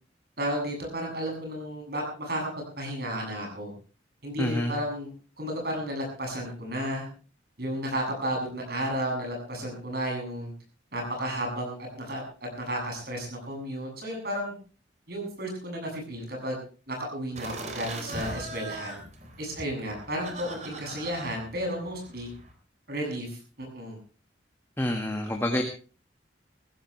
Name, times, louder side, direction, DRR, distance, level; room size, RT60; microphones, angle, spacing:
voice 1, 0.4-2.5 2.8-3.7 4.2-5.1 5.4-7.1 7.6-10.5 10.9-12.2 12.6-14.5 15.1-16.6 16.9-19.0 19.4-22.3 22.9-24.0, equal, 55° right, 1 dB, 7.5 m, -33 dB
voice 2, 4.4-4.7 24.8-25.6, left 1 dB, 10° left, 3 dB, 1.7 m, -27 dB
sound 1, 17.4-22.5, right 2 dB, 40° right, 3.4 m, -41 dB
20.0 x 15.5 x 3.3 m, 0.37 s
head